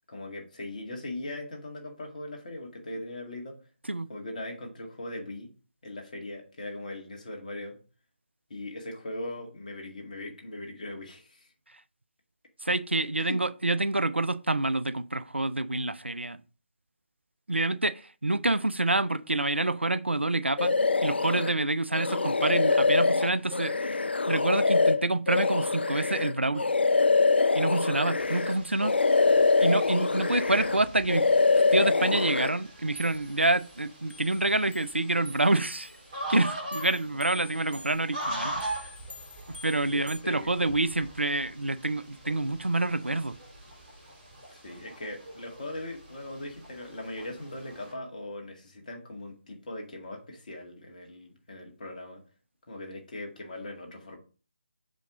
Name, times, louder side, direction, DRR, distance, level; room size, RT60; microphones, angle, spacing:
voice 1, 0.1-3.5 4.1-5.5 5.8-7.8 8.5-11.5 13.2-13.4 39.9-40.5 44.5-52.2 52.7-54.2, left 1 dB, 45° left, 2.0 m, -40 dB
voice 2, 12.6-16.4 17.5-20.7 21.0-24.0 24.3-26.6 27.5-29.0 29.6-31.3 31.7-35.9 36.3-38.7 39.6-43.4, right 2 dB, 80° right, 0.5 m, -27 dB
sound 1, 20.6-21.5 21.9-28.6 28.8-30.8 31.1-32.5, left 4 dB, 65° left, 0.5 m, -24 dB
sound 2, 28.2-47.9, right 1 dB, 30° right, 3.5 m, -42 dB
sound 3, 31.4-32.0 32.3-32.4 33.0-36.1 36.7-40.2, left 1 dB, 85° left, 1.8 m, -48 dB
6.5 x 5.2 x 3.7 m
figure-of-eight pair, 150°, 6 cm